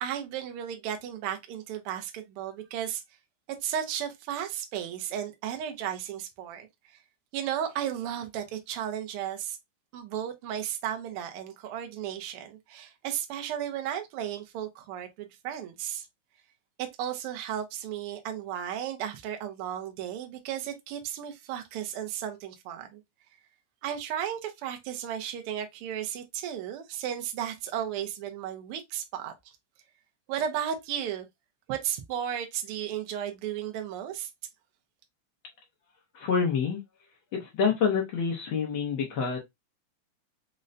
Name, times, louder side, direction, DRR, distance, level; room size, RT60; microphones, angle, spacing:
voice 1, 0.0-3.0 3.6-6.7 7.3-9.6 9.9-16.1 16.8-23.0 23.8-29.3 30.3-31.3 31.7-34.3, right 10 dB, 80° right, 1.3 m, -34 dB
voice 2, 36.1-36.8 37.3-39.4, left 6 dB, 85° left, 1.1 m, -27 dB
5.1 x 2.1 x 2.5 m
omnidirectional pair, 3.3 m